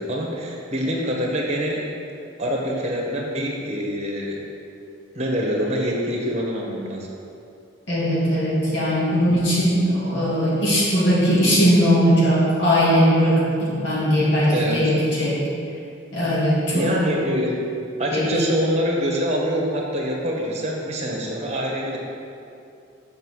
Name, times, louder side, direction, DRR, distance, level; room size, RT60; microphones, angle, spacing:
voice 1, 0.0-1.8 2.4-4.4 5.1-7.1 14.5-14.9 16.7-22.0, equal, 35° right, -1 dB, 1.3 m, -25 dB
voice 2, 7.9-15.4 16.1-16.8 18.1-18.4, equal, 65° left, -8 dB, 2.2 m, -19 dB
7.8 x 5.7 x 6.3 m, 2.6 s
head